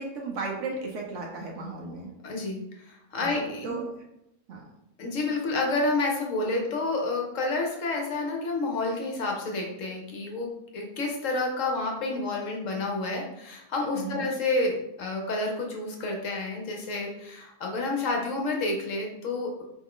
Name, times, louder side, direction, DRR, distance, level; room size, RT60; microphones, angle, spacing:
voice 1, 0.0-2.1 3.1-3.8 4.5-4.6 13.9-14.3, right 4 dB, 60° right, 0 dB, 1.0 m, -35 dB
voice 2, 2.2-3.7 5.0-19.6, left 2 dB, 65° left, 0 dB, 1.0 m, -29 dB
3.5 x 3.1 x 3.7 m, 0.84 s
omnidirectional pair, 1.6 m